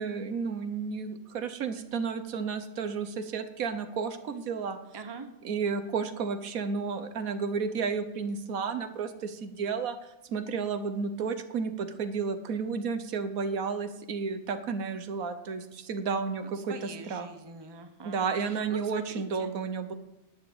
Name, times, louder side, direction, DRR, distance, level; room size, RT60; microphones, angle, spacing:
voice 1, 0.0-4.8 5.4-10.0 10.3-17.3 18.0-19.9, right 5 dB, 75° right, 10 dB, 1.4 m, -32 dB
voice 2, 4.9-5.3 16.4-19.5, right 4 dB, 20° right, 7 dB, 1.0 m, -43 dB
11.0 x 7.5 x 8.6 m, 0.90 s
omnidirectional pair, 1.5 m